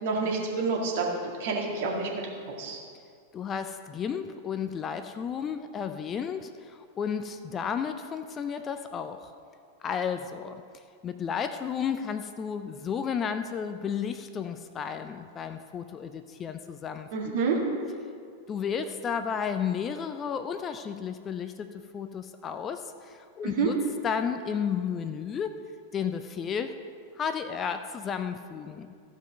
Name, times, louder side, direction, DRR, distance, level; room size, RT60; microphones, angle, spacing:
voice 1, 0.0-1.1 1.4-2.1 2.6-2.8 17.1-17.6 23.4-23.7, right 5 dB, 55° right, -2 dB, 2.0 m, -28 dB
voice 2, 3.3-9.3 9.8-10.6 11.0-17.4 18.5-25.6 25.9-26.7 27.2-28.9, left 7 dB, 25° left, 9 dB, 0.5 m, -33 dB
15.0 x 5.2 x 5.3 m, 2.2 s
figure-of-eight pair, 90°, 0 cm